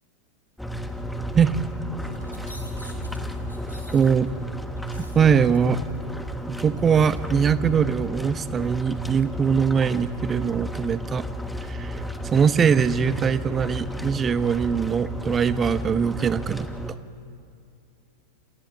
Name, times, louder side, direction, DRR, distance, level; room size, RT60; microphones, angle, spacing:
sound 1, 0.6-16.9, equal, ahead, 1.3 m, -33 dB
sound 2, 2.0-7.2, left 1 dB, 90° left, 2.9 m, -45 dB
voice 1, 3.9-4.3 5.0-5.8 6.5-11.3 11.6-12.0 12.3-16.7, right 7 dB, 20° right, 15 dB, 0.8 m, -22 dB
27.5 x 14.0 x 7.4 m, 2.5 s
figure-of-eight pair, 90°, 0 cm